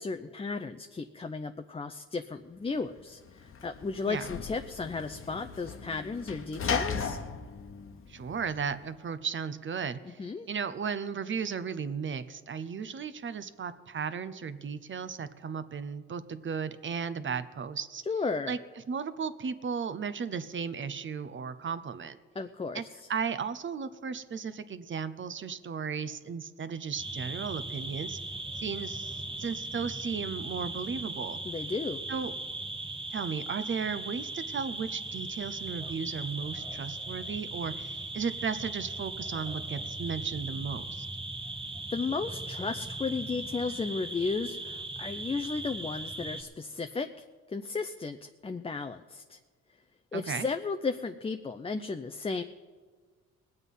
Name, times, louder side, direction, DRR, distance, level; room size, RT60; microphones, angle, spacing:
voice 1, 0.0-7.2 10.1-10.5 18.1-18.6 22.4-22.8 31.4-32.0 41.9-49.4 50.1-52.4, left 4 dB, 20° left, 8 dB, 0.5 m, -34 dB
Sliding door / Slam, 2.9-8.8, left 5 dB, 45° left, 1.1 m, -37 dB
voice 2, 8.1-18.0 18.5-18.6 18.9-22.2 22.7-22.8 23.1-28.2 28.5-31.4 32.1-32.3 33.1-41.1 50.1-50.5, right 6 dB, 40° right, 13 dB, 0.8 m, -35 dB
sound 1, 27.0-46.4, right 2 dB, 15° right, 1.3 m, -38 dB
20.0 x 8.1 x 5.5 m, 1.5 s
cardioid pair, 90°, 30 cm